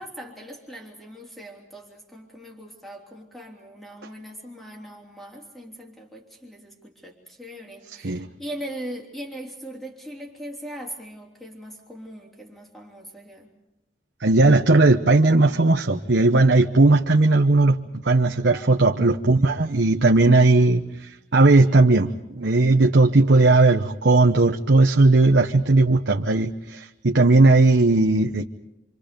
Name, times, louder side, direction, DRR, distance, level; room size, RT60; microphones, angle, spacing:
voice 1, 0.0-13.5 18.5-18.9, equal, ahead, 0 dB, 3.2 m, -40 dB
voice 2, 14.2-28.5, right 2 dB, 65° right, 3 dB, 0.9 m, -17 dB
28.0 x 25.5 x 5.2 m, 0.90 s
head